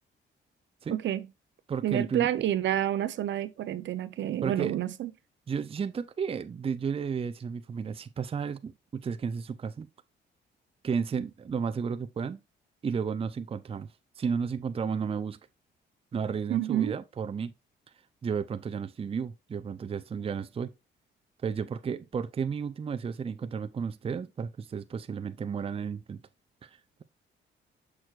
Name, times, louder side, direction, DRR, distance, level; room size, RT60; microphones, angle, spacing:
voice 1, 0.9-1.3 1.8-5.1 16.5-16.9, right 12 dB, 70° right, 0.7 m, -29 dB
voice 2, 1.7-2.3 4.4-4.8 5.5-9.9 10.8-12.4 12.8-13.9 14.2-15.4 16.1-17.5 18.2-20.7 21.4-26.2 26.6-26.7, right 6 dB, 30° right, 0.5 m, -32 dB
6.4 x 6.1 x 2.4 m
cardioid pair, 90°, 20 cm